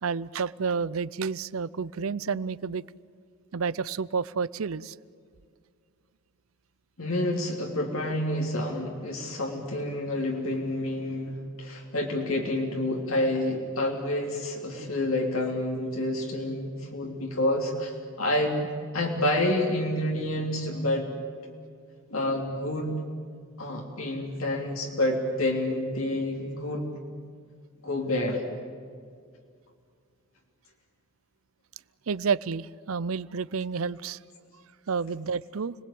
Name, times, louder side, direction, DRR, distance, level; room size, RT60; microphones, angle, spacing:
voice 1, 0.0-2.8 3.5-5.0 32.1-34.2 34.9-35.8, right 5 dB, 85° right, 20 dB, 0.6 m, -30 dB
voice 2, 7.0-18.7 18.9-21.1 22.1-23.0 23.6-26.9 27.8-28.4, left 1 dB, 80° left, 0 dB, 3.2 m, -28 dB
29.5 x 20.5 x 8.6 m, 2.1 s
head